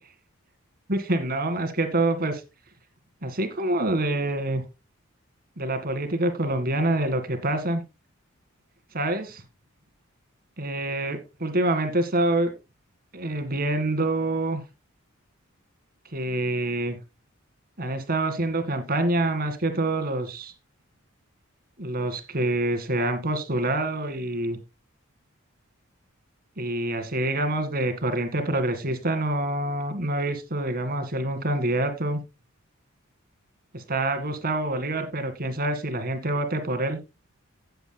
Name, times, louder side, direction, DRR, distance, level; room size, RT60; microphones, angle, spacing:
voice 1, 0.9-2.4 3.2-4.6 5.6-7.8 8.9-9.4 10.6-12.5 13.1-14.6 16.1-17.0 17.8-20.5 21.8-24.6 26.6-32.2 33.7-37.0, right 2 dB, 45° right, 8 dB, 1.9 m, -26 dB
16.5 x 8.0 x 2.2 m, 0.25 s
head